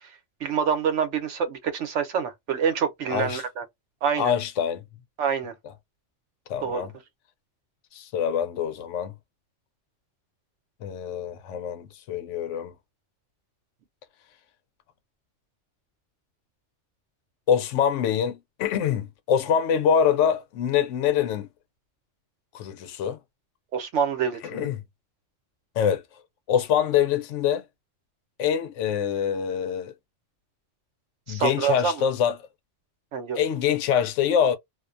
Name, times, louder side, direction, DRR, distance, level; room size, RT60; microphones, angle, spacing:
voice 1, 0.4-3.6 4.0-4.3 5.2-5.5 6.6-6.9 23.7-24.7 31.3-31.9 33.1-33.4, right 7 dB, 75° right, 1.0 m, -26 dB
voice 2, 3.1-3.4 4.2-4.8 6.5-6.9 7.9-9.1 10.8-12.7 17.5-21.5 22.5-23.2 24.4-24.8 25.8-26.0 26.5-27.6 28.4-29.9 31.3-32.4 33.3-34.6, left 8 dB, 80° left, 0.9 m, -25 dB
2.4 x 2.2 x 2.4 m
omnidirectional pair, 1.2 m